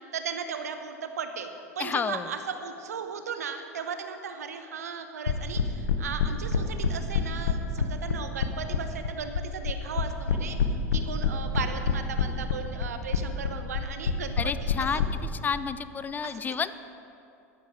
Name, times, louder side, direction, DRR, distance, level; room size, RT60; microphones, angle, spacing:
voice 1, 0.1-1.5 1.8-14.5 14.8-15.0 16.2-16.3, right 6 dB, 80° right, 7 dB, 1.0 m, -36 dB
voice 2, 1.8-2.3 14.4-15.0 15.4-16.7, left 6 dB, 20° left, 14 dB, 0.5 m, -30 dB
sound 1, 5.3-15.1, left 7 dB, 80° left, 0.9 m, -26 dB
12.5 x 11.5 x 4.8 m, 2.6 s
hypercardioid pair, 90°, 8 cm